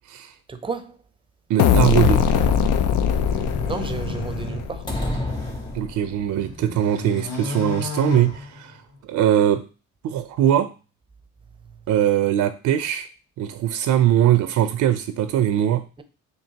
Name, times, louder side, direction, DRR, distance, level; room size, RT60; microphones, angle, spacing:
voice 1, 0.5-1.0 3.6-4.9, right 4 dB, 15° right, 0.5 m, -32 dB
voice 2, 1.5-2.2 5.7-8.7 9.1-9.6 10.0-10.7 11.9-13.1 13.4-15.8, right 11 dB, 80° right, 0.5 m, -21 dB
sound 1, 1.6-5.2, left 8 dB, 85° left, 0.5 m, -21 dB
sound 2, 3.0-5.7 6.1-9.0, left 2 dB, 50° left, 2.2 m, -33 dB
sound 3, 4.9-6.5, left 1 dB, 15° left, 0.8 m, -29 dB
4.5 x 2.8 x 2.8 m
cardioid pair, 90°, 30 cm